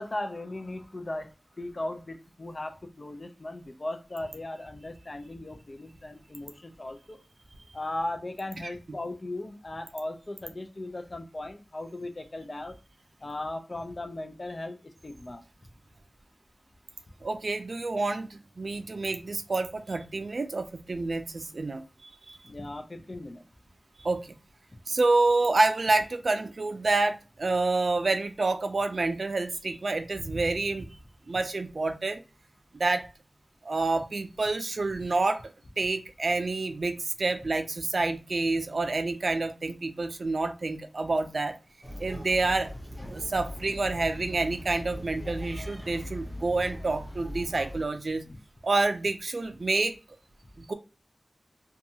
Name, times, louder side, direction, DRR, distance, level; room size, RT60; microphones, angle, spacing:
voice 1, 0.0-1.3 1.6-7.2 7.7-12.8 13.2-15.4 22.4-23.4 43.0-43.1 48.2-48.4, left 1 dB, 50° left, 0.5 m, -37 dB
voice 2, 17.2-22.4 24.0-24.3 24.9-30.9 31.3-32.2 32.7-33.1 33.6-35.4 35.8-41.6 42.0-42.7 43.1-48.2 48.6-49.9 50.6-50.7, right 3 dB, 70° right, 0.4 m, -28 dB
sound 1, 41.8-47.8, left 1 dB, 15° right, 0.7 m, -40 dB
2.6 x 2.3 x 2.7 m
wide cardioid pair, 50°, 0 cm